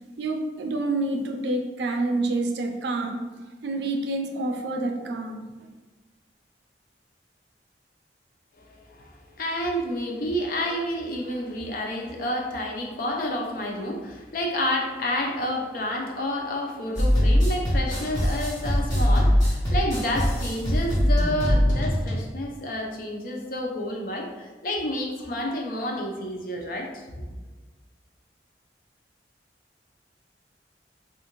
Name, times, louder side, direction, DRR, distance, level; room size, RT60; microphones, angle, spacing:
voice 1, 0.0-3.2 3.6-5.5, right 2 dB, 70° right, 4 dB, 0.4 m, -28 dB
voice 2, 8.7-9.1 9.4-27.1, left 1 dB, 50° left, 0 dB, 0.5 m, -29 dB
sound 1, 16.9-22.1, equal, 20° left, 1.1 m, -22 dB
3.5 x 2.4 x 2.9 m, 1.2 s
head